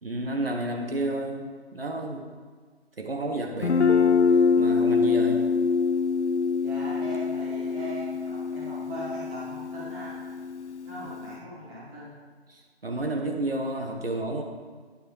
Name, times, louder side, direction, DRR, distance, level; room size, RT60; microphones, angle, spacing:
voice 1, 0.0-2.3 3.0-4.0 4.6-5.4 12.5-14.4, right 1 dB, 60° right, 2 dB, 1.2 m, -31 dB
Guitar, 3.6-11.3, left 5 dB, 90° left, 0.6 m, -25 dB
voice 2, 6.6-10.1 10.8-12.1, right 1 dB, 10° right, -8 dB, 1.8 m, -39 dB
9.8 x 6.5 x 4.8 m, 1.5 s
figure-of-eight pair, 155°, 33 cm